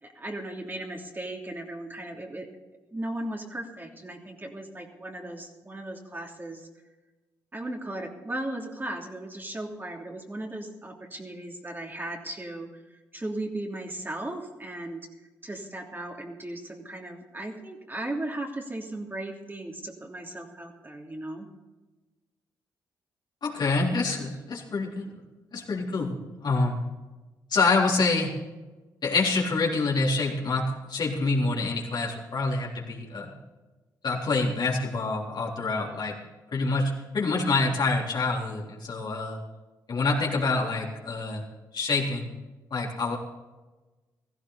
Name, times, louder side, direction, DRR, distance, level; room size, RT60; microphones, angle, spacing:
voice 1, 0.0-2.5 2.9-6.7 7.5-12.7 13.1-15.1 15.4-21.5, right 1 dB, 25° right, 0 dB, 3.1 m, -36 dB
voice 2, 23.4-25.2 25.5-26.8 27.5-28.4 29.0-33.3 34.0-36.2 36.5-39.4 39.9-41.4 41.7-42.3 42.7-43.2, left 3 dB, 55° left, -4 dB, 3.8 m, -26 dB
16.5 x 15.0 x 4.2 m, 1.2 s
hypercardioid pair, 45°, 9 cm